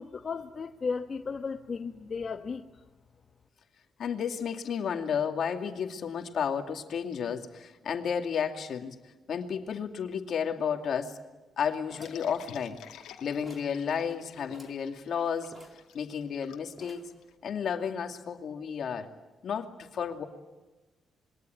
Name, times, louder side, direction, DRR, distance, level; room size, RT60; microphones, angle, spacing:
voice 1, 0.0-2.6, left 5 dB, 45° left, 5 dB, 1.3 m, -35 dB
voice 2, 4.0-9.0 9.3-11.2 11.6-12.8 13.2-15.5 15.9-17.1 17.4-19.1 19.4-20.2, left 7 dB, 65° left, 5 dB, 2.5 m, -32 dB
sound 1, 11.9-13.1 13.4-13.8 14.1-14.2 14.5-14.9 15.5-16.4 16.8-17.2, right 1 dB, 20° right, 3.9 m, -52 dB
sound 2, 12.0-17.3, left 10 dB, 85° left, 2.4 m, -49 dB
27.5 x 22.5 x 9.3 m, 1.2 s
cardioid pair, 70°, 0 cm